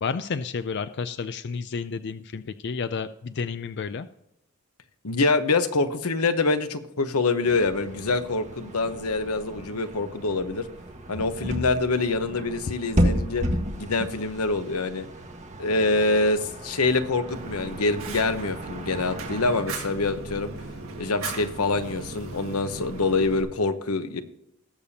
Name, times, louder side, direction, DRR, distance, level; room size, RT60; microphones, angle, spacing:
voice 1, 0.0-4.1 12.7-12.8, left 5 dB, 50° left, 12 dB, 0.4 m, -31 dB
voice 2, 5.0-10.6 11.1-13.4 13.8-15.1 15.6-20.5 21.0-24.2, left 3 dB, 90° left, 10 dB, 1.0 m, -25 dB
sound 1, 7.4-19.6, equal, 35° right, 1.5 m, -33 dB
Fire, 17.3-23.4, right 3 dB, 65° right, 1.8 m, -37 dB
19.5 x 6.8 x 2.8 m, 0.83 s
head